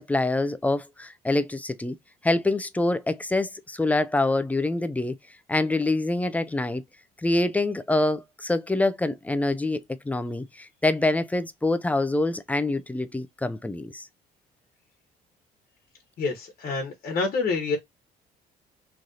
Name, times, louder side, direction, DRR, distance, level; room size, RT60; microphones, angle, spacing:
voice 1, 0.0-2.0 2.2-5.2 5.5-6.8 7.2-14.1, left 2 dB, 10° left, 0.4 m, -25 dB
voice 2, 16.2-17.8, left 4 dB, 55° left, 1.2 m, -27 dB
3.2 x 2.7 x 3.7 m
cardioid pair, 110°, 17 cm